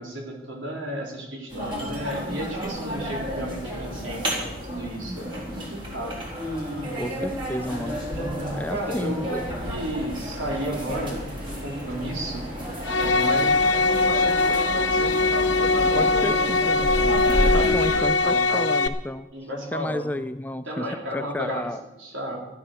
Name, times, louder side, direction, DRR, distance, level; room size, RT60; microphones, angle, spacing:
voice 1, 0.0-6.2 8.1-12.5 13.0-16.6 17.7-18.6 19.3-20.1 20.6-21.7 22.0-22.4, equal, 90° right, -1 dB, 3.9 m, -33 dB
sound 1, 1.5-18.0, equal, 25° right, 4.1 m, -31 dB
voice 2, 6.9-8.0 8.5-9.4 16.0-16.9 17.5-19.3 19.7-21.8, left 1 dB, 10° left, 11 dB, 0.4 m, -31 dB
sound 2, 12.8-18.9, left 3 dB, 70° left, 0.9 m, -21 dB
13.5 x 11.0 x 6.8 m, 1.0 s
head